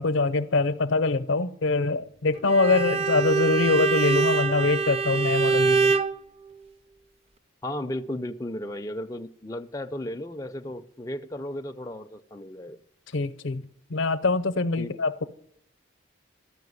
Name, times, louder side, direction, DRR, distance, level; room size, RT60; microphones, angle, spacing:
voice 1, 0.0-5.9 13.1-13.6 13.9-15.2, left 3 dB, 75° left, 0.6 m, -24 dB
Bowed string instrument, 2.5-6.2, right 5 dB, 30° right, 0.5 m, -24 dB
voice 2, 7.6-12.8 14.8-14.9, left 1 dB, 15° left, 0.4 m, -34 dB
13.0 x 5.8 x 9.4 m
head